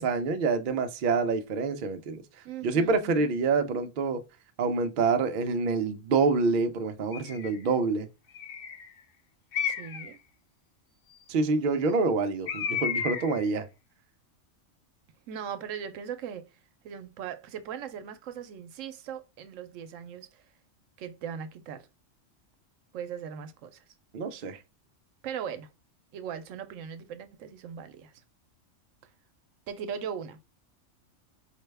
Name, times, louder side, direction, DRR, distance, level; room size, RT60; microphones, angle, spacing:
voice 1, 0.0-2.2 2.6-4.2 4.6-8.1 11.3-13.7 24.1-24.6, right 4 dB, 55° right, 0.6 m, -27 dB
voice 2, 2.4-3.3 9.7-10.2 15.3-16.5 16.8-20.4 21.0-21.9 22.9-23.8 25.2-25.7 26.1-28.1 29.7-30.4, right 8 dB, 85° right, 1.0 m, -39 dB
Bird, 7.1-7.6 8.3-8.9 9.5-10.1 12.5-13.5, left 7 dB, 55° left, 0.7 m, -32 dB
4.6 x 2.1 x 3.3 m
omnidirectional pair, 1.3 m